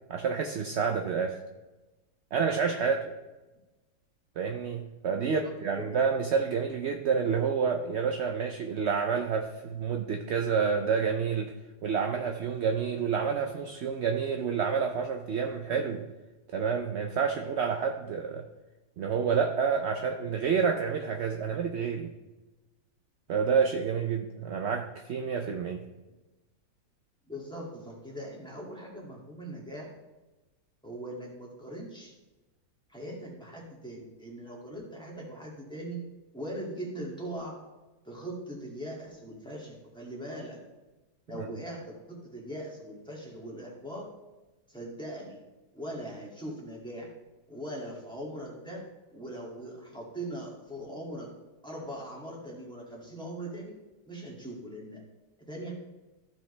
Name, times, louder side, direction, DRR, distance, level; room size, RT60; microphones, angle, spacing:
voice 1, 0.1-1.4 2.3-3.1 4.4-11.5 11.8-16.1 16.5-18.5 19.0-22.1 23.3-25.8, right 6 dB, 65° right, 3 dB, 0.6 m, -29 dB
voice 2, 5.2-6.0 27.3-29.9 30.8-32.2 32.9-36.0 36.3-37.6 38.0-40.6 41.3-44.1 44.7-45.4 45.7-47.1 47.5-51.3 51.6-53.8 54.1-55.0 55.5-55.7, right 1 dB, 5° left, -4 dB, 2.1 m, -40 dB
14.5 x 5.1 x 3.3 m, 1.1 s
omnidirectional pair, 1.8 m